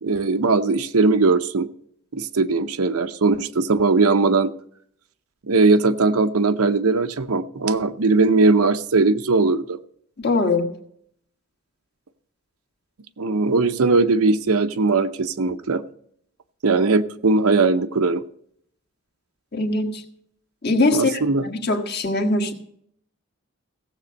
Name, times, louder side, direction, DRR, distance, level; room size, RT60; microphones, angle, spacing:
voice 1, 0.0-1.7 2.1-4.5 5.5-9.8 13.2-15.8 16.6-18.2 20.9-21.4, right 3 dB, 80° right, 10 dB, 0.7 m, -19 dB
voice 2, 10.2-10.7 19.5-20.0 20.6-22.5, left 2 dB, 45° left, 4 dB, 1.4 m, -22 dB
16.0 x 7.7 x 5.2 m, 0.67 s
head